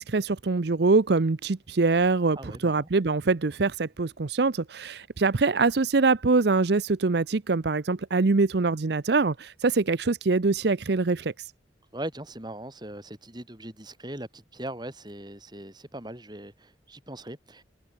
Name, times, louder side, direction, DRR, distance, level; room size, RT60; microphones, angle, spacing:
voice 1, 0.0-11.3, right 3 dB, 60° right, 0.7 m, -24 dB
voice 2, 2.4-2.9 11.9-17.6, right 1 dB, 20° right, 3.9 m, -40 dB
head